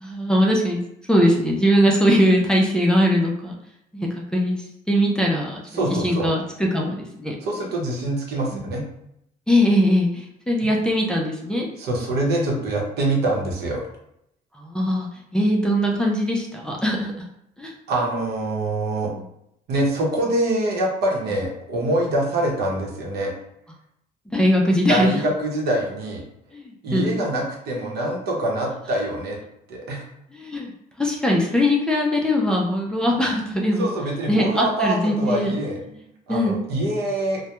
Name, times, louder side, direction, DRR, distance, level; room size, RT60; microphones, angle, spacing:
voice 1, 0.0-3.5 3.9-4.6 4.9-7.3 8.5-8.6 9.5-11.7 14.6-17.1 17.6-17.7 19.1-19.2 24.3-25.1 26.5-27.3 30.3-30.7 31.0-33.9 34.3-35.5 35.9-36.0 36.3-36.6, equal, 5° left, -2 dB, 0.4 m, -21 dB
voice 2, 5.7-6.3 7.4-8.8 11.8-13.8 17.9-19.1 19.7-23.3 24.9-26.2 26.8-29.4 29.7-30.1 33.8-35.8 36.3-37.4, right 1 dB, 75° right, -2 dB, 0.8 m, -24 dB
2.2 x 2.1 x 2.9 m, 0.78 s
cardioid pair, 110°, 17 cm